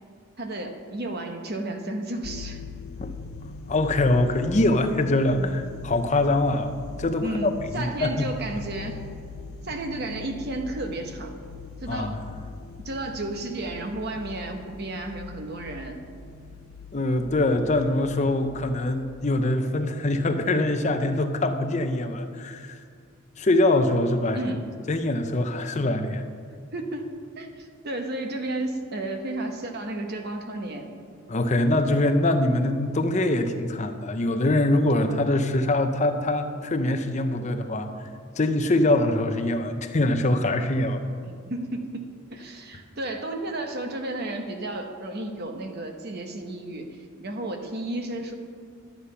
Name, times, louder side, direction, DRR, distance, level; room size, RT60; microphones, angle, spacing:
voice 1, 0.4-2.6 7.2-9.0 9.6-11.4 11.8-12.2 12.8-16.0 24.3-24.7 26.7-30.9 41.2-48.3, right 2 dB, 50° right, 5 dB, 1.0 m, -33 dB
sound 1, 2.2-19.0, left 4 dB, 80° left, 0.5 m, -41 dB
voice 2, 3.7-6.7 7.0-8.3 11.9-12.2 16.9-22.8 23.4-24.4 24.9-26.2 31.3-37.9 38.3-41.0, left 2 dB, 35° left, 7 dB, 0.6 m, -23 dB
11.5 x 8.2 x 5.7 m, 2.2 s
head